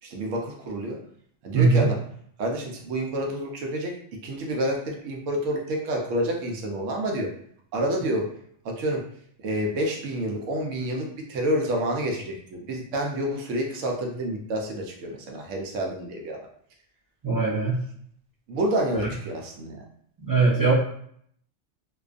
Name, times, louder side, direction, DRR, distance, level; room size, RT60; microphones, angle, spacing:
voice 1, 0.0-1.0 1.4-2.0 2.4-3.9 4.2-7.3 7.7-8.3 8.6-9.0 9.4-16.4 18.5-19.8, right 1 dB, 85° right, 0 dB, 1.0 m, -28 dB
voice 2, 1.5-1.9 17.2-17.8 20.2-20.7, right 4 dB, 25° right, -7 dB, 0.4 m, -20 dB
2.5 x 2.2 x 2.4 m, 0.64 s
omnidirectional pair, 1.3 m